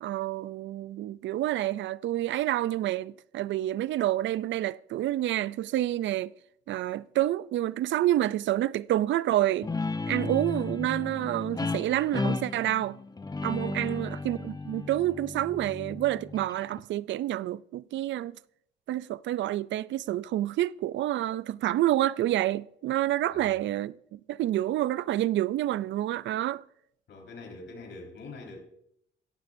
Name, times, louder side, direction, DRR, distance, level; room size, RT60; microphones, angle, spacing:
voice 1, 0.0-6.3 6.7-9.7 10.1-13.0 13.4-18.4 18.9-26.6, right 14 dB, 70° right, 0.4 m, -28 dB
Guitar, 9.6-16.8, left 3 dB, 20° left, 0.8 m, -34 dB
voice 2, 13.7-14.1 23.3-23.6 27.1-28.6, left 3 dB, 65° left, 4.6 m, -44 dB
16.5 x 14.5 x 2.6 m
cardioid pair, 90°, 20 cm